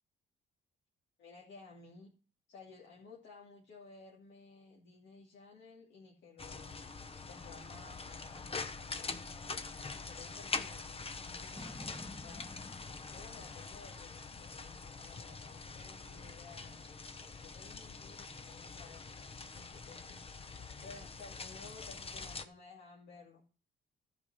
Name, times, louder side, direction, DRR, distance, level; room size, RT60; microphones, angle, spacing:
voice 1, 1.2-2.1 2.5-6.9 7.2-9.6 9.9-12.6 13.1-16.8 17.4-20.2 20.8-23.4, left 4 dB, 65° left, -3 dB, 2.6 m, -55 dB
sound 1, 6.4-22.5, left 4 dB, 30° left, 0.9 m, -44 dB
Boom, 11.6-14.9, left 1 dB, 10° left, 1.7 m, -52 dB
11.5 x 5.0 x 5.6 m, 0.37 s
cardioid pair, 90°, 20 cm